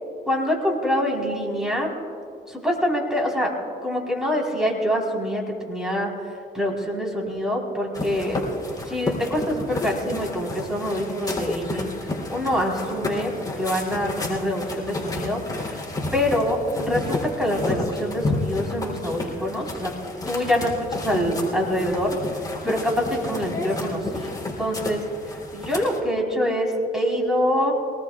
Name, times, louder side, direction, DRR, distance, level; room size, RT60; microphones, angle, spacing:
voice 1, 0.3-1.9 2.5-3.5 3.8-5.4 5.7-6.1 6.5-8.5 8.9-11.9 12.3-13.3 13.6-15.4 15.7-15.8 16.1-19.9 20.3-22.2 22.6-25.0 25.5-27.7, equal, 5° right, -1 dB, 4.0 m, -25 dB
sound 1, 7.9-26.0, left 2 dB, 20° left, 3.2 m, -31 dB
23.5 x 19.0 x 2.4 m, 2.3 s
cardioid pair, 90°, 20 cm